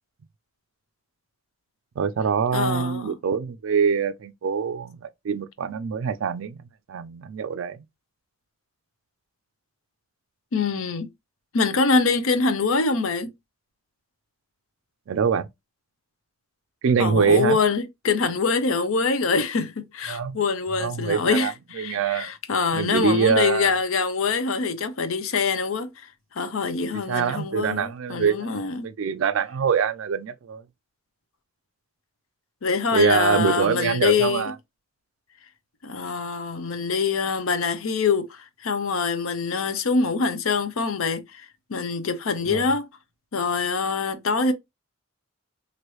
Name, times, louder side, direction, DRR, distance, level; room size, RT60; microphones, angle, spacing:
voice 1, 2.0-6.6 6.9-7.8 15.1-15.5 16.8-17.6 20.1-20.4 20.8-21.5 21.8-22.3 22.7-23.8 26.9-28.5 28.8-30.6 32.9-34.5 42.4-42.7, right 6 dB, 65° right, 0.3 m, -24 dB
voice 2, 2.5-3.1 10.5-11.1 11.5-13.3 17.0-28.9 32.6-34.5 35.8-42.9 43.3-44.5, left 4 dB, 70° left, 0.6 m, -24 dB
3.1 x 2.5 x 3.0 m
head